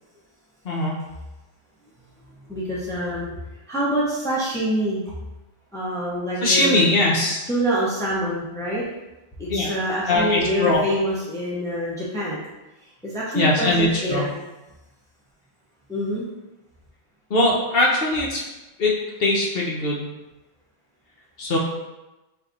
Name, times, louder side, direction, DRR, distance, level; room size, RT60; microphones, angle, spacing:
voice 1, 2.5-3.3 3.7-5.1 5.7-6.8 7.5-8.8 9.4-12.4 13.0-14.3 15.9-16.3, equal, 5° left, -7 dB, 0.4 m, -26 dB
voice 2, 6.4-7.4 9.5-9.7 10.1-10.8 13.3-14.2 17.3-18.4 18.8-20.1 21.4-21.6, left 2 dB, 55° left, -3 dB, 0.9 m, -21 dB
4.5 x 3.5 x 2.5 m, 1.0 s
omnidirectional pair, 1.3 m